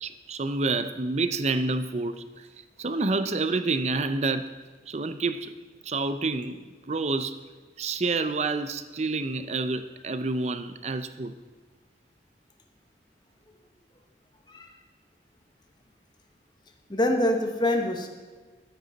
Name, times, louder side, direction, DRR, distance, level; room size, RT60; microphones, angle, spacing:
voice 1, 0.0-2.5 2.8-4.5 4.9-5.6 5.8-7.4 7.8-11.4, right 3 dB, 40° right, 11 dB, 0.5 m, -28 dB
voice 2, 16.9-18.1, left 1 dB, 25° left, 4 dB, 1.0 m, -25 dB
13.0 x 9.3 x 4.1 m, 1.4 s
head